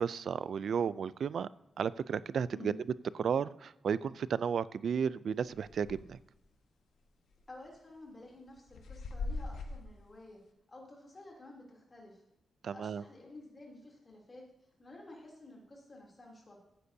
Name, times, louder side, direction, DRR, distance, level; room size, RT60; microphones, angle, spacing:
voice 1, 0.0-1.5 1.8-2.7 3.2-6.2 12.6-13.0, right 7 dB, 60° right, 18 dB, 0.3 m, -33 dB
sound 1, 5.5-6.2 6.5-6.6 7.3-7.7 8.3-9.9, left 3 dB, 85° left, 1.1 m, -40 dB
voice 2, 7.5-10.4 10.7-12.2 12.7-14.4 14.8-16.6, left 2 dB, 25° left, -2 dB, 2.9 m, -52 dB
15.0 x 9.7 x 2.7 m, 0.87 s
wide cardioid pair, 165°, 0 cm